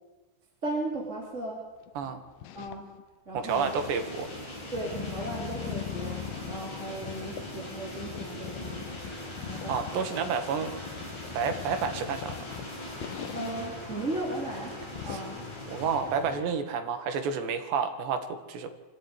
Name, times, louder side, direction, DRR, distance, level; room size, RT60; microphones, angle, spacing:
voice 1, 0.6-1.6 2.5-2.8 3.2-3.7 4.7-8.9 9.4-10.3 13.3-14.7 15.0-15.4, right 2 dB, 20° right, -2 dB, 3.4 m, -36 dB
sound 1, 1.9-3.0 3.4-7.6 8.0-13.7 13.9-14.0 14.4-14.5 14.8-15.2, left 11 dB, 70° left, 2.4 m, -41 dB
voice 2, 3.3-4.3 9.7-10.7 11.3-12.4 15.1-15.2 15.7-18.7, right 6 dB, 85° right, 7 dB, 4.2 m, -30 dB
sound 2, 3.5-16.4, left 1 dB, 40° left, 7.7 m, -41 dB
25.5 x 15.5 x 9.9 m, 1.2 s
omnidirectional pair, 4.8 m